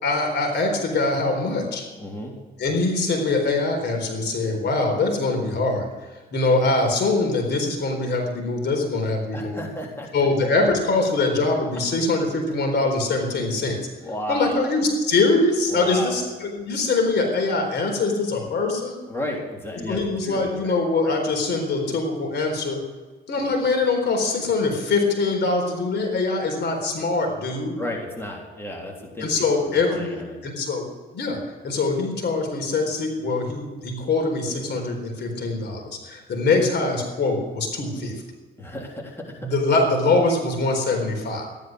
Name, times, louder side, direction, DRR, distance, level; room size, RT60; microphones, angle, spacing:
voice 1, 0.0-1.8 2.6-5.9 6.3-9.6 10.1-13.8 14.3-18.9 19.9-22.8 23.3-27.8 29.2-30.9 31.1-38.1 39.4-41.5, left 3 dB, 60° left, 3 dB, 4.1 m, -23 dB
voice 2, 2.0-2.4 9.3-10.1 14.0-14.6 15.7-16.2 19.1-20.7 21.0-21.1 23.3-23.5 27.8-30.4 38.6-39.6, left 1 dB, 10° left, -1 dB, 3.6 m, -33 dB
14.5 x 11.5 x 6.4 m, 1.3 s
cardioid pair, 90°, 20 cm